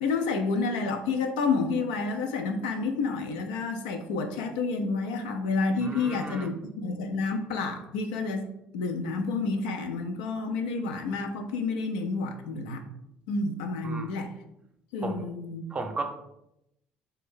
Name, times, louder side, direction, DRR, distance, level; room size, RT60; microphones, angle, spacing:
voice 1, 0.0-8.5 8.7-12.8 13.3-14.3 14.9-15.6, left 4 dB, 90° left, 5 dB, 0.3 m, -29 dB
voice 2, 5.8-6.5 13.8-14.1 15.0-15.2 15.7-16.0, right 3 dB, 30° right, 5 dB, 0.6 m, -34 dB
2.5 x 2.2 x 3.5 m, 0.82 s
hypercardioid pair, 65°, 4 cm